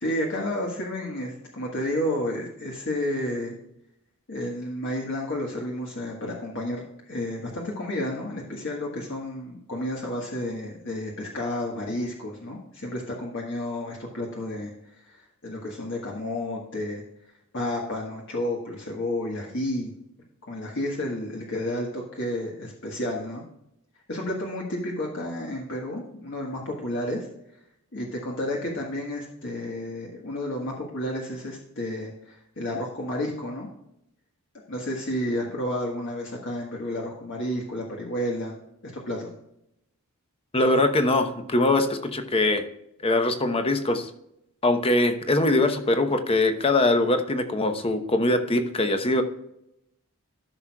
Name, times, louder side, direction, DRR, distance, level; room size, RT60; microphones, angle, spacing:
voice 1, 0.0-3.6 4.3-14.7 15.0-17.0 17.5-19.9 20.5-23.4 24.1-27.3 27.9-33.7 34.7-38.6 39.0-39.3, left 1 dB, 55° left, -1 dB, 1.5 m, -31 dB
voice 2, 40.5-42.6 43.0-44.1 44.6-49.2, left 2 dB, 25° left, 7 dB, 0.9 m, -22 dB
13.5 x 6.2 x 2.3 m, 0.80 s
head